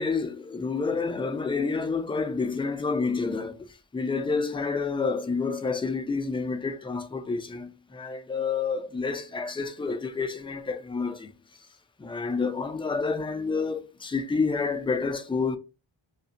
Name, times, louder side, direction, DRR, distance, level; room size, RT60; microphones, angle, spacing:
voice 1, 0.0-11.3 12.0-15.6, left 4 dB, 10° left, 0.3 m, -29 dB
2.4 x 2.0 x 2.8 m
cardioid pair, 60°, 49 cm